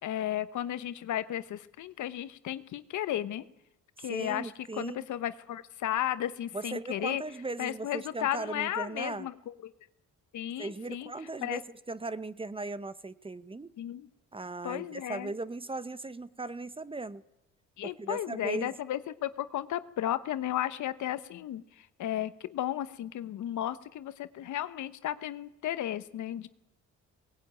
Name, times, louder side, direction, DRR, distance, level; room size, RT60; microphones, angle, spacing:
voice 1, 0.0-3.4 4.0-7.2 7.6-9.3 9.6-9.7 10.3-11.1 11.4-11.6 13.8-14.1 14.6-15.3 17.8-26.5, left 12 dB, 75° left, 13 dB, 1.1 m, -34 dB
voice 2, 4.0-5.0 6.5-9.3 10.6-11.6 11.9-13.7 14.3-17.2 17.8-18.7, right 3 dB, 20° right, 15 dB, 0.8 m, -38 dB
19.0 x 17.5 x 8.9 m, 0.84 s
cardioid pair, 90°, 30 cm